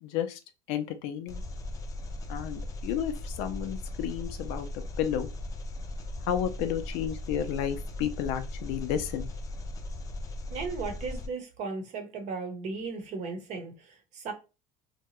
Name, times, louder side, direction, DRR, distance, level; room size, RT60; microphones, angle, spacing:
voice 1, 0.0-0.4 0.7-1.4 2.3-5.3 6.3-9.3, left 9 dB, 80° left, 0.5 m, -32 dB
Engine, 1.3-11.3, left 1 dB, 20° left, 0.4 m, -38 dB
voice 2, 10.5-14.3, right 4 dB, 50° right, 0.8 m, -36 dB
2.8 x 2.2 x 2.9 m
cardioid pair, 150°, 16 cm